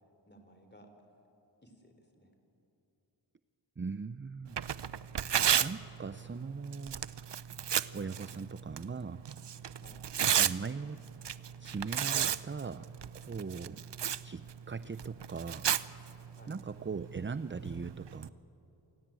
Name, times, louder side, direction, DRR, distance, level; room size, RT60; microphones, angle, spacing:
voice 1, 0.3-0.9 1.6-2.3 9.8-10.1 16.4-16.6, right 1 dB, 25° left, 5 dB, 3.9 m, -58 dB
voice 2, 3.8-4.6 5.6-7.0 7.9-9.2 10.4-11.0 11.6-13.8 14.2-15.7 16.5-18.3, right 5 dB, 25° right, 14 dB, 0.5 m, -40 dB
Tearing, 4.4-18.3, right 9 dB, 65° right, 0.7 m, -35 dB
27.5 x 17.0 x 9.0 m, 2.9 s
wide cardioid pair, 45°, 46 cm